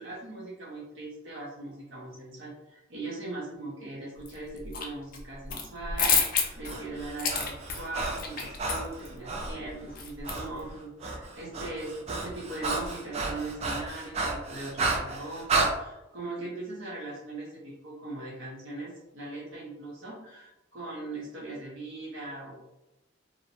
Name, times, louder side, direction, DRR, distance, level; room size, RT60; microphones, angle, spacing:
voice 1, 0.0-22.7, right 2 dB, 70° right, -5 dB, 0.6 m, -40 dB
sound 1, 4.3-4.9 5.1-10.7, left 6 dB, 45° left, 0.4 m, -30 dB
Breathing, 6.4-9.6 10.2-10.5 10.8-15.7, right 3 dB, 30° right, 0.3 m, -32 dB
2.5 x 2.0 x 2.8 m, 0.92 s
head